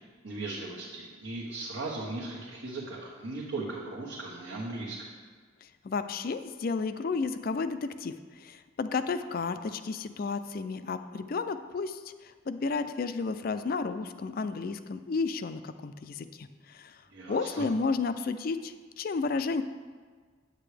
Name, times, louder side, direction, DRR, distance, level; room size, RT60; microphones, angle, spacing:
voice 1, 0.2-5.1 17.1-17.7, right 2 dB, 70° right, -5 dB, 1.3 m, -37 dB
voice 2, 5.8-17.0 17.3-19.6, left 4 dB, 45° left, 10 dB, 0.4 m, -32 dB
8.9 x 8.2 x 3.3 m, 1.6 s
head